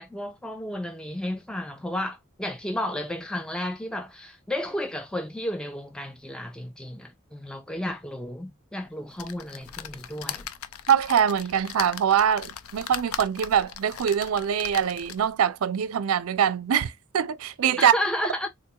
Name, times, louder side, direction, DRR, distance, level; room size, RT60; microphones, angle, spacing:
voice 1, 0.0-10.4 17.8-18.5, left 1 dB, 5° left, 0.3 m, -32 dB
sound 1, 9.2-15.4 15.9-16.0 16.3-16.4, left 9 dB, 85° left, 0.5 m, -39 dB
voice 2, 10.9-17.9, right 8 dB, 80° right, 0.4 m, -23 dB
3.7 x 2.3 x 2.8 m
head